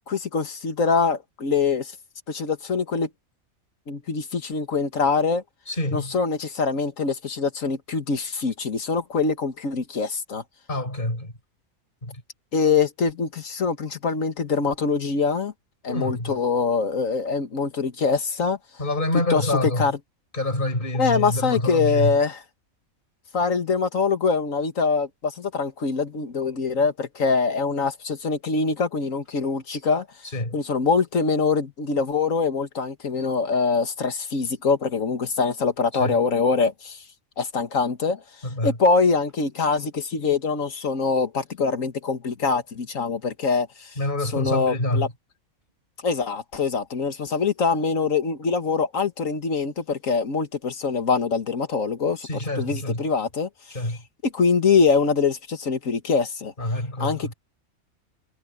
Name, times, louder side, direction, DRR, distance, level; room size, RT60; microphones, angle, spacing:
voice 1, 0.1-2.0 2.3-3.1 3.9-5.4 5.9-10.4 12.5-15.5 15.8-18.6 19.3-20.0 21.0-22.4 23.3-30.1 30.5-37.0 37.4-38.2 38.6-43.9 44.3-45.1 46.0-52.3 52.6-53.5 54.2-56.5 57.0-57.3, left 5 dB, 70° left, 2.1 m, -24 dB
voice 2, 5.7-6.1 10.7-11.3 12.0-12.2 15.9-16.4 18.8-19.9 20.3-22.2 30.3-30.6 36.0-36.2 38.4-38.8 44.0-45.1 52.2-53.0 53.7-54.0 56.6-57.3, left 1 dB, 35° left, 5.1 m, -26 dB
omnidirectional pair, 1.4 m